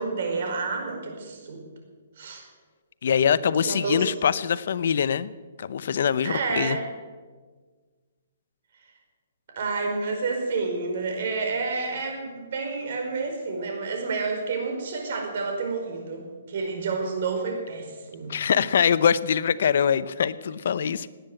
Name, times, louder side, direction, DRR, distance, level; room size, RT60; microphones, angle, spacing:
voice 1, 0.0-1.6 2.2-2.4 3.6-4.1 6.2-6.8 9.5-18.3, right 4 dB, 55° right, 3 dB, 4.9 m, -29 dB
voice 2, 3.0-5.3 5.6-6.8 18.3-21.1, left 7 dB, 60° left, 16 dB, 0.7 m, -23 dB
18.0 x 9.7 x 7.8 m, 1.4 s
hypercardioid pair, 160°, 0 cm